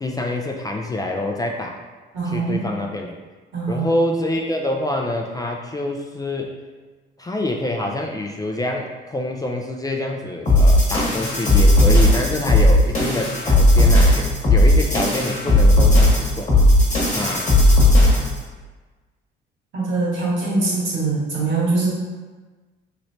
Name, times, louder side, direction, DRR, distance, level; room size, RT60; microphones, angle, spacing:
voice 1, 0.0-1.8 2.3-3.2 3.7-6.5 7.2-16.5 17.1-17.6, left 1 dB, 20° left, 1 dB, 0.4 m, -26 dB
voice 2, 2.1-2.6 3.5-3.9 19.7-21.9, right 3 dB, 70° right, -6 dB, 1.4 m, -22 dB
sound 1, 10.5-18.4, left 1 dB, 35° left, 1.1 m, -15 dB
3.0 x 3.0 x 2.6 m, 1.3 s
supercardioid pair, 70°, 20 cm